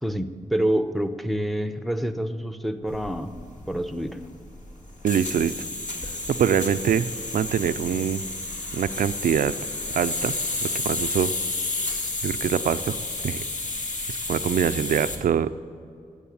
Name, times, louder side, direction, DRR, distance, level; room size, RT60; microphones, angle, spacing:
voice 1, 0.0-3.3 3.7-4.2, right 1 dB, ahead, 9 dB, 0.8 m, -27 dB
sound 1, 2.9-15.2, left 2 dB, 60° left, 2.1 m, -31 dB
voice 2, 5.0-5.7 6.4-7.1 7.3-8.2 8.7-9.5 9.9-10.3 10.8-11.3 12.2-13.0 13.2-13.4 14.1-15.5, right 8 dB, 80° right, 13 dB, 0.5 m, -24 dB
13.0 x 8.4 x 8.6 m, 2.4 s
cardioid pair, 75°, 14 cm